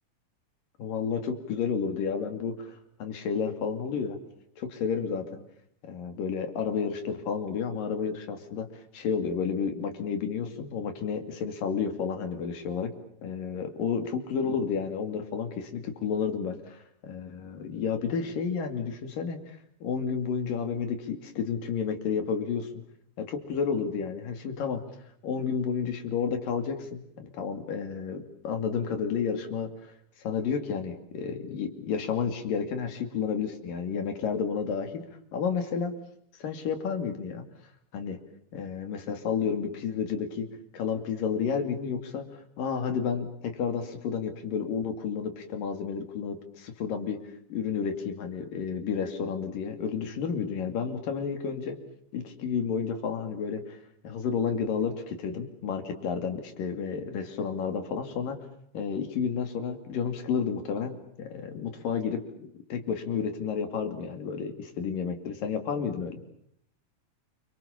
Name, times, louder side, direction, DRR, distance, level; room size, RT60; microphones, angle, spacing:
voice 1, 0.8-4.2 4.6-5.4 5.8-8.7 8.9-12.9 13.2-19.4 19.8-22.7 23.2-24.8 25.2-29.7 30.2-35.0 35.3-35.9 36.4-37.4 37.9-38.2 38.5-40.5 40.7-42.2 42.6-47.2 47.5-51.8 52.1-53.8 54.0-58.4 58.7-66.2, left 6 dB, 85° left, 7 dB, 4.3 m, -31 dB
29.0 x 25.0 x 7.2 m, 0.68 s
omnidirectional pair, 3.8 m